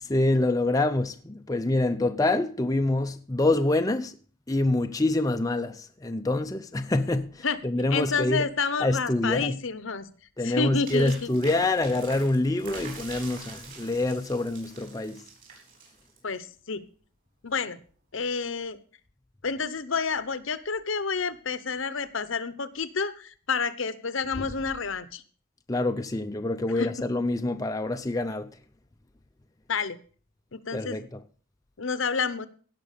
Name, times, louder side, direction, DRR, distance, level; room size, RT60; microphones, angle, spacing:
voice 1, 0.0-4.1 4.5-8.5 8.8-9.6 10.4-15.2 24.4-24.5 25.7-28.5 30.7-31.2, left 2 dB, 15° left, 0.5 m, -26 dB
voice 2, 7.9-10.1 10.4-11.3 16.2-16.8 17.4-17.8 18.1-18.8 19.4-25.2 26.7-26.9 29.7-30.0 30.5-31.0 31.8-32.5, left 5 dB, 65° left, 0.9 m, -29 dB
sound 1, 10.9-16.4, right 4 dB, 40° right, 5.5 m, -44 dB
17.0 x 6.0 x 6.7 m
head